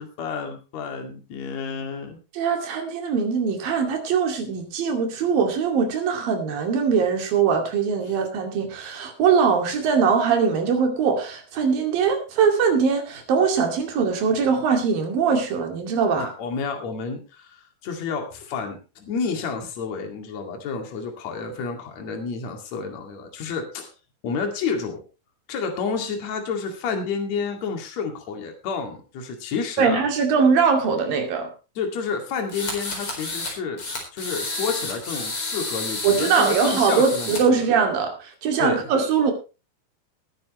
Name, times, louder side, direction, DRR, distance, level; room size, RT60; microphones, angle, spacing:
voice 1, 0.0-2.2 8.0-8.2 16.2-23.9 24.2-25.0 25.5-30.1 31.8-33.8 34.1-37.4 38.6-38.9, left 5 dB, 50° left, 4 dB, 3.3 m, -30 dB
voice 2, 2.3-16.3 29.8-31.5 36.0-39.3, right 6 dB, 70° right, 4 dB, 4.1 m, -21 dB
sound 1, 32.5-33.5 33.8-37.4, left 3 dB, 35° left, 4.8 m, -30 dB
20.0 x 9.6 x 3.1 m, 0.31 s
omnidirectional pair, 4.2 m